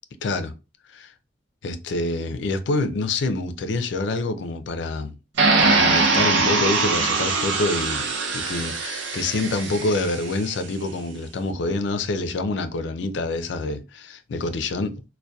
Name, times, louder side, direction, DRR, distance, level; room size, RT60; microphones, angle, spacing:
voice 1, 0.2-0.5 0.9-1.1 1.6-5.2 5.6-8.1 8.3-15.0, left 2 dB, 65° left, 0.4 m, -26 dB
sound 1, 5.4-10.4, right 3 dB, 70° right, 0.5 m, -22 dB
2.6 x 2.1 x 2.2 m
head